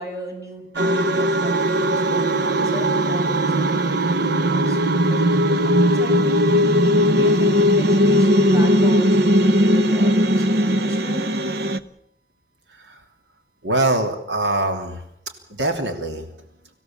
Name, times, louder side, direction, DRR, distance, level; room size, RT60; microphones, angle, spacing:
voice 1, 0.0-6.4 6.7-6.8 7.1-11.4, equal, 20° right, 1 dB, 7.0 m, -37 dB
sound 1, 0.8-11.8, equal, 65° right, 1.1 m, -18 dB
voice 2, 12.7-13.0 13.6-15.1 15.5-16.3, right 2 dB, 90° right, 6 dB, 3.0 m, -23 dB
26.0 x 16.5 x 7.3 m, 0.71 s
head